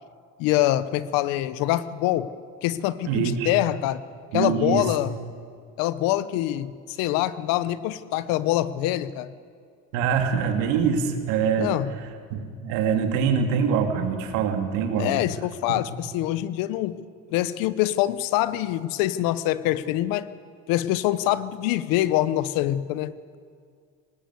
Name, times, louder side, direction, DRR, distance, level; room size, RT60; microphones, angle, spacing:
voice 1, 0.4-2.3 2.6-4.0 4.3-5.1 5.8-9.3 11.6-11.9 15.0-17.0 17.3-20.3 20.7-23.2, left 14 dB, 80° left, 15 dB, 1.1 m, -25 dB
voice 2, 3.1-3.5 4.3-4.9 9.9-11.7 12.3-15.2 15.7-15.8, right 6 dB, 85° right, 5 dB, 2.8 m, -24 dB
20.0 x 19.0 x 8.3 m, 2.2 s
cardioid pair, 105°, 34 cm